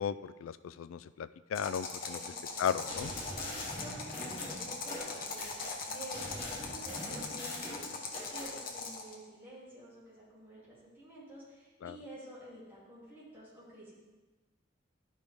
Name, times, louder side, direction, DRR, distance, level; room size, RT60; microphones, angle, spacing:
voice 1, 0.0-2.2 2.6-3.1 11.8-12.0, left 8 dB, 90° left, 14 dB, 0.3 m, -35 dB
sound 1, 1.5-9.2, left 4 dB, 45° left, 1.0 m, -41 dB
voice 2, 2.1-3.3 3.7-5.5 5.8-13.9, equal, 10° right, -11 dB, 3.0 m, -50 dB
sound 2, 2.9-5.7 6.1-8.5, left 1 dB, 30° left, 2.1 m, -43 dB
11.5 x 5.2 x 3.5 m, 1.2 s
head